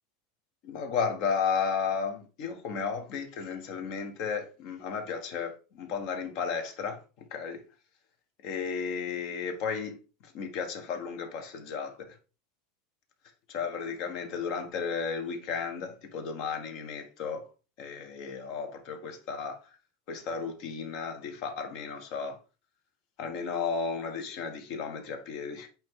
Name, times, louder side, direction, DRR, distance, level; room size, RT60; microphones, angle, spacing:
voice 1, 0.6-7.0 7.3-7.6 8.4-10.0 10.3-11.9 13.5-17.4 17.8-19.6 20.1-22.4 23.2-25.7, left 6 dB, 45° left, 1.2 m, -33 dB
8.6 x 3.0 x 3.7 m
supercardioid pair, 160°, 0 cm